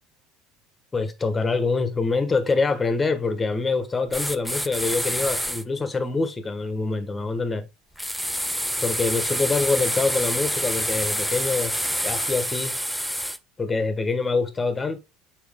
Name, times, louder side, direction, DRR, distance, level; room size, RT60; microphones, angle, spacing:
voice 1, 0.9-7.6 8.8-11.7 12.0-12.8 13.6-15.0, left 4 dB, 15° left, 1.2 m, -25 dB
sound 1, 4.1-5.6 8.0-13.4, equal, ahead, 0.5 m, -27 dB
7.1 x 4.6 x 3.7 m
cardioid pair, 140°, 0 cm